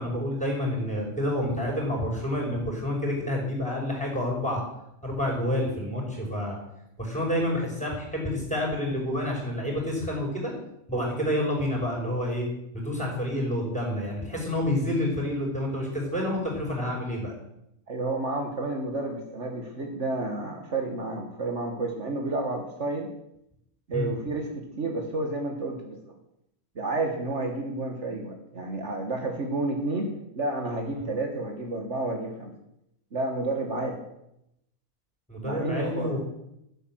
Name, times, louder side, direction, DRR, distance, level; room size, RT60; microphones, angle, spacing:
voice 1, 0.0-4.6 5.0-6.6 7.0-10.5 10.9-12.5 12.7-17.3 23.9-24.1 30.9-31.1 35.3-36.2, left 1 dB, 5° left, -2 dB, 5.8 m, -28 dB
voice 2, 17.9-23.1 23.9-26.0 26.8-32.5 33.1-34.1 35.4-36.2, right 2 dB, 55° right, 2 dB, 1.9 m, -30 dB
14.0 x 8.4 x 7.9 m, 0.82 s
omnidirectional pair, 1.5 m